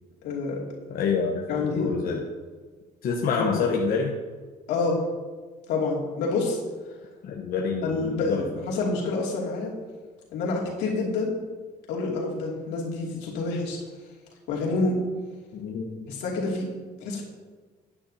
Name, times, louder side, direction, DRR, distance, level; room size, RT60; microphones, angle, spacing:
voice 1, 0.2-0.6 1.5-2.0 4.7-5.0 5.7-6.6 7.8-9.8 10.3-11.3 11.9-13.8 14.5-15.0 16.1-16.7 17.0-17.2, left 3 dB, 90° left, -3 dB, 2.7 m, -27 dB
voice 2, 0.9-1.5 1.7-2.2 3.0-4.1 7.2-8.6 15.5-16.1, left 5 dB, 60° left, 0 dB, 1.1 m, -27 dB
12.0 x 9.8 x 2.8 m, 1.4 s
cardioid pair, 110°, 17 cm